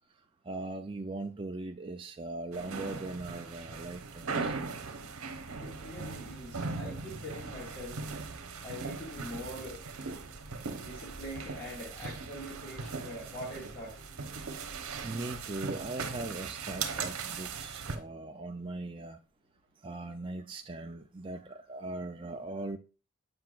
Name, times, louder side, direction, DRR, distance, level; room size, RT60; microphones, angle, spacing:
voice 1, 0.5-4.6 12.0-12.1 12.8-13.0 15.0-19.2 19.8-22.8, right 2 dB, 25° right, 0.4 m, -40 dB
sound 1, 2.5-18.0, right 4 dB, 85° right, 0.9 m, -39 dB
voice 2, 5.6-8.0 8.6-9.8 10.8-13.9, equal, 35° left, 2.9 m, -43 dB
7.9 x 5.6 x 2.4 m
head